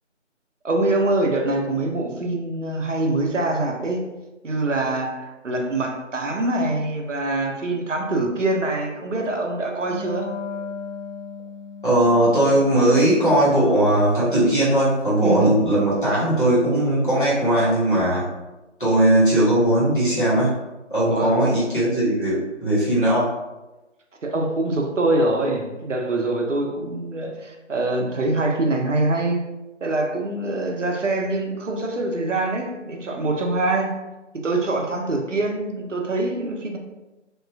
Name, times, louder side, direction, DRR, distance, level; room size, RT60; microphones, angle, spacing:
voice 1, 0.6-4.0 4.4-10.3 15.2-15.6 21.1-21.3 24.2-29.4 29.8-34.0 34.3-36.8, right 2 dB, 80° right, 2 dB, 0.6 m, -24 dB
Wind instrument woodwind instrument, 9.8-14.9, left 5 dB, 90° left, 0.5 m, -37 dB
voice 2, 11.8-18.3 18.8-20.5 20.9-23.3, right 1 dB, 45° left, -9 dB, 1.2 m, -19 dB
2.9 x 2.3 x 2.2 m, 1.1 s
figure-of-eight pair, 170°, 37 cm